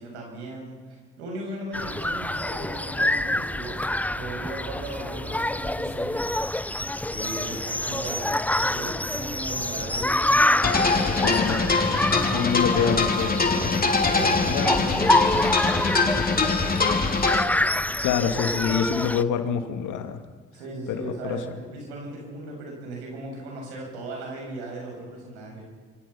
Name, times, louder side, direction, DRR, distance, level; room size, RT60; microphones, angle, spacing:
voice 1, 0.0-6.2 7.0-11.8 13.4-16.8 20.5-25.6, right 2 dB, 85° right, 0 dB, 8.0 m, -37 dB
sound 1, 1.7-19.2, left 1 dB, 5° left, 0.8 m, -27 dB
sound 2, 10.6-17.4, left 4 dB, 25° left, 3.1 m, -23 dB
voice 2, 11.2-11.7 12.3-13.9 14.4-15.0 18.0-20.2 20.9-21.4, left 7 dB, 65° left, 6 dB, 2.6 m, -27 dB
26.5 x 26.0 x 5.9 m, 1.5 s
hypercardioid pair, 55°, 33 cm